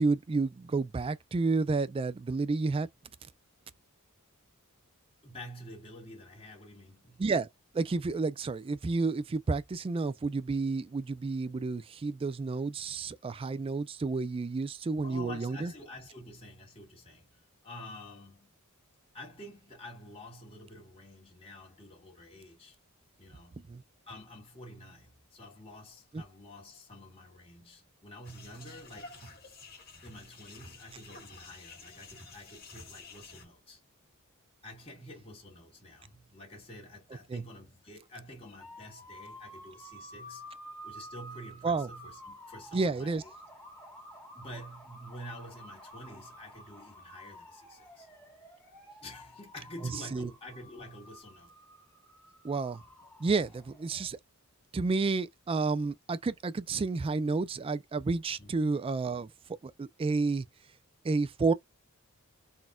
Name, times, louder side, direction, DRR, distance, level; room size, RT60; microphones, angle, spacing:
voice 1, 0.0-2.9 7.2-7.5 7.7-15.7 23.7-23.8 26.1-26.2 37.3-37.4 41.6-41.9 42.7-43.2 50.1-50.3 52.4-52.8 53.2-54.2 54.7-59.3 59.6-60.4 61.0-61.5, right 3 dB, 25° right, 0.3 m, -30 dB
voice 2, 5.2-7.2 15.0-18.5 19.1-22.8 23.2-23.6 24.1-29.2 30.0-33.8 34.6-40.5 40.8-43.3 44.3-48.1 49.0-51.5 58.4-58.5, left 1 dB, 25° left, 1.7 m, -48 dB
sound 1, 28.2-33.5, left 3 dB, 45° left, 1.9 m, -50 dB
sound 2, 38.6-54.1, equal, 10° left, 1.6 m, -51 dB
4.0 x 2.5 x 2.2 m
head